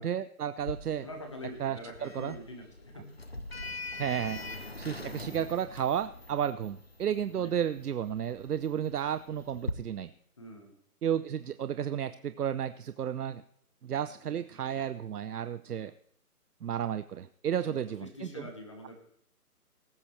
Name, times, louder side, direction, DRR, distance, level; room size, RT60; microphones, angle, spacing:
voice 1, 0.0-1.1 1.6-2.3 4.0-4.4 4.8-10.1 11.0-13.4 13.8-15.9 16.6-18.4, right 9 dB, 75° right, 13 dB, 0.7 m, -32 dB
Sliding door, 0.6-9.7, left 2 dB, 45° left, 0.4 m, -43 dB
voice 2, 1.0-3.1 7.3-7.5 10.4-10.7 14.6-14.9 17.6-18.9, left 1 dB, 20° left, 3 dB, 1.2 m, -45 dB
19.0 x 8.8 x 3.2 m, 0.67 s
hypercardioid pair, 180°, 46 cm